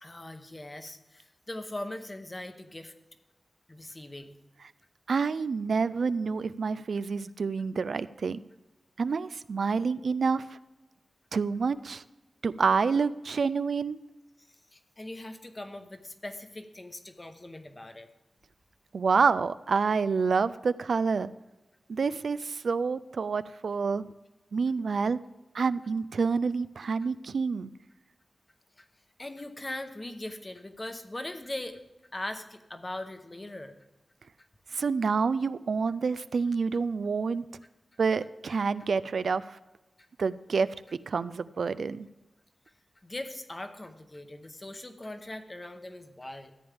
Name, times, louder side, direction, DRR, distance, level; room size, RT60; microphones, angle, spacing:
voice 1, 0.0-2.9 3.7-4.4 14.7-18.1 28.8-28.9 29.2-31.8 32.1-33.8 43.0-46.5, left 1 dB, 25° left, 7 dB, 0.9 m, -40 dB
voice 2, 5.1-8.4 9.0-10.5 11.3-12.0 12.4-14.0 18.9-21.3 21.9-24.0 24.5-25.2 25.5-27.7 34.7-37.4 38.0-39.6 40.2-40.7 41.1-42.1, right 5 dB, 75° right, 15 dB, 0.3 m, -28 dB
14.0 x 8.8 x 3.4 m, 1.0 s
wide cardioid pair, 110°, 0 cm